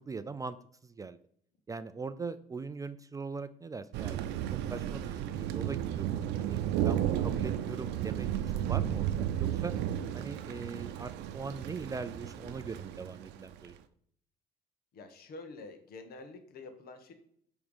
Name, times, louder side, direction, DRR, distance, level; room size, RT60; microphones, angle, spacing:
voice 1, 0.1-0.6 0.8-1.2 1.7-4.2 4.5-9.7 10.1-13.8, right 4 dB, 20° right, 13 dB, 0.4 m, -41 dB
Thunder, 3.9-13.6, right 11 dB, 90° right, 0.6 m, -33 dB
voice 2, 10.6-11.0 14.9-17.1, left 3 dB, 65° left, 7 dB, 1.5 m, -48 dB
8.5 x 3.5 x 5.5 m, 0.64 s
cardioid pair, 110°, 17 cm